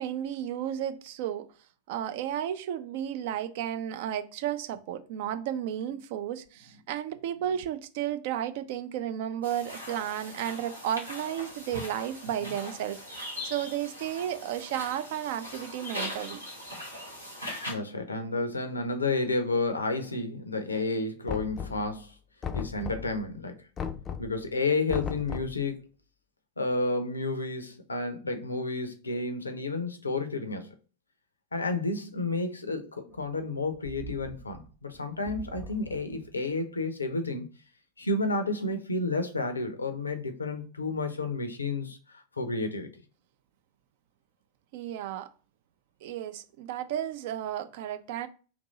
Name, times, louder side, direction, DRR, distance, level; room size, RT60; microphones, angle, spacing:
voice 1, 0.0-1.5 1.9-13.0 13.4-16.4 44.7-45.3 46.0-48.3, right 10 dB, 50° right, 0.3 m, -33 dB
sound 1, 9.4-17.7, left 1 dB, 90° right, 1.1 m, -40 dB
voice 2, 17.7-22.1 22.5-23.6 24.2-25.8 26.6-30.7 31.5-37.5 38.0-42.0 42.4-42.9, left 3 dB, 80° left, 0.5 m, -31 dB
Knock, 21.3-22.0 22.4-23.2 23.8-24.4 24.9-25.6, left 7 dB, 25° left, 0.4 m, -35 dB
sound 2, 33.1-36.5, right 5 dB, 15° right, 0.8 m, -45 dB
2.9 x 2.6 x 3.8 m
figure-of-eight pair, 90°, 0 cm